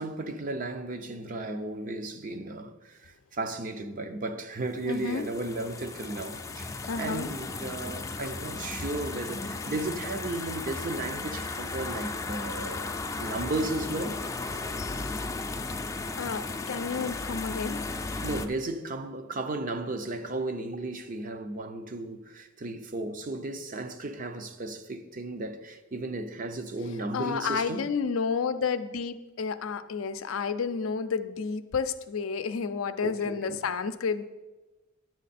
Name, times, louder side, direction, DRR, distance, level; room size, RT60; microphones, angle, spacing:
voice 1, 0.0-12.9 13.2-14.2 18.2-27.8 33.0-33.6, right 2 dB, 40° right, 0.6 m, -35 dB
voice 2, 4.8-5.3 6.9-7.3 16.2-17.8 27.1-34.2, left 5 dB, 70° left, 0.5 m, -31 dB
sound 1, 4.8-18.5, left 3 dB, 15° left, 0.5 m, -35 dB
10.5 x 7.5 x 4.2 m
head